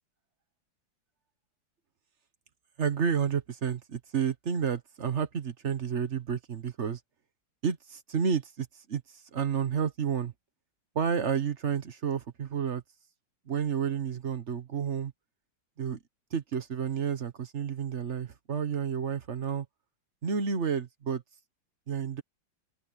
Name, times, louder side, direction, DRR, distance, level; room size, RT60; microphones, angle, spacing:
voice 1, 2.8-7.0 7.6-9.0 9.3-10.3 10.9-12.8 13.5-15.1 15.8-16.0 16.3-19.7 20.2-21.2 21.9-22.2, right 7 dB, 45° right, 1.2 m, -30 dB
open air
omnidirectional pair, 2.1 m